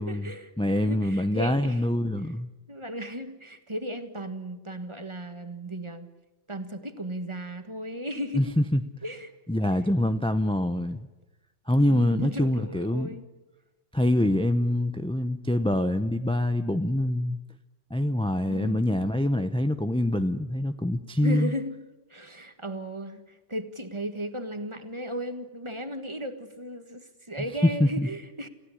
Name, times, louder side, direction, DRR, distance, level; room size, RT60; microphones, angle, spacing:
voice 1, 0.0-1.8 2.7-6.1 6.5-8.5 9.0-9.3 11.8-13.2 18.5-18.8 21.2-21.8 22.1-28.5, equal, 25° right, 9 dB, 1.7 m, -36 dB
voice 2, 0.6-2.5 8.3-8.8 9.5-11.0 11.7-13.1 13.9-17.4 17.9-21.5 27.6-28.1, left 1 dB, 5° left, 9 dB, 0.6 m, -25 dB
28.5 x 16.0 x 9.9 m, 1.1 s
omnidirectional pair, 1.3 m